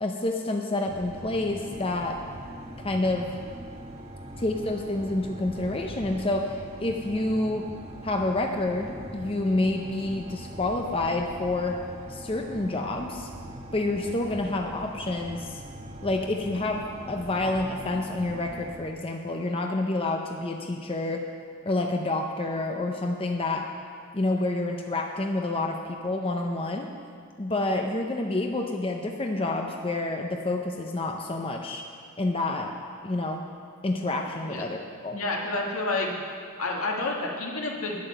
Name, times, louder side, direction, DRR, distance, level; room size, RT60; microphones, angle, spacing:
voice 1, 0.0-2.2 2.8-3.3 4.4-7.7 8.0-11.8 12.1-13.3 13.7-15.6 16.0-21.2 21.6-23.7 24.1-26.9 27.4-31.8 32.2-32.7 33.0-33.4 33.8-35.2, left 2 dB, 25° left, 2 dB, 0.6 m, -28 dB
sound 1, 0.9-18.8, right 1 dB, 30° right, 1.2 m, -42 dB
voice 2, 35.1-36.1 36.6-37.9, left 2 dB, 85° left, -1 dB, 1.7 m, -29 dB
9.5 x 8.8 x 6.7 m, 2.1 s
head